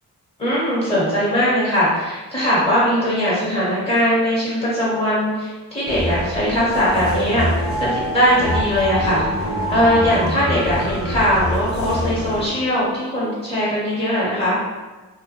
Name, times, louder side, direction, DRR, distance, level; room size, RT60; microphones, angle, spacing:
voice 1, 0.4-9.2 9.7-14.6, equal, 15° left, -7 dB, 1.2 m, -20 dB
sound 1, 5.9-12.5, equal, 35° left, 0.6 m, -25 dB
2.1 x 2.1 x 2.9 m, 1.2 s
supercardioid pair, 40°, 38 cm